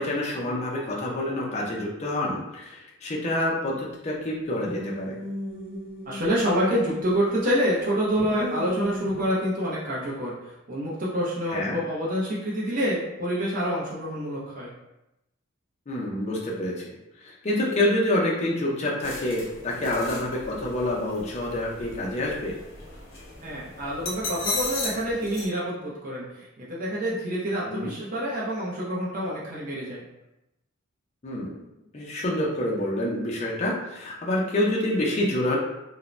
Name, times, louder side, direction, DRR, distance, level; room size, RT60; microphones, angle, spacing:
voice 1, 0.0-5.1 11.5-11.8 15.9-16.9 17.2-22.5 27.7-27.9 31.2-31.5 31.9-35.6, left 1 dB, 30° left, -3 dB, 0.4 m, -27 dB
sound 1, 4.5-7.3 7.7-9.3, equal, 5° right, 0.8 m, -36 dB
voice 2, 6.1-14.7 23.4-30.0, equal, 40° right, -6 dB, 0.6 m, -27 dB
sound 2, 19.0-25.4, left 2 dB, 70° left, 0.8 m, -36 dB
2.5 x 2.0 x 3.1 m, 0.90 s
head